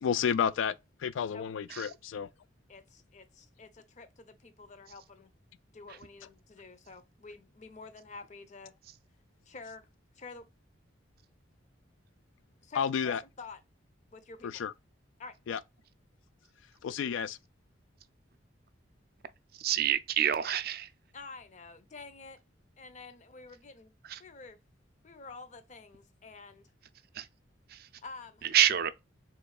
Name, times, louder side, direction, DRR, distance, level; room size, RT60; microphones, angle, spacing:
voice 1, 0.0-2.3 12.8-13.2 14.4-14.7 15.5-15.6 16.8-17.4, left 7 dB, 90° left, 0.3 m, -31 dB
voice 2, 2.7-5.3 5.7-8.7 9.5-9.9 10.1-10.5 12.6-13.6 14.1-14.6 15.2-15.3 21.1-22.4 22.8-23.9 24.2-24.6 25.0-26.7 28.0-28.5, left 4 dB, 40° left, 0.6 m, -49 dB
voice 3, 19.5-20.9 24.0-24.2 27.1-27.3 27.7-27.9 28.4-29.0, right 10 dB, 50° right, 0.4 m, -28 dB
4.2 x 3.1 x 2.3 m
head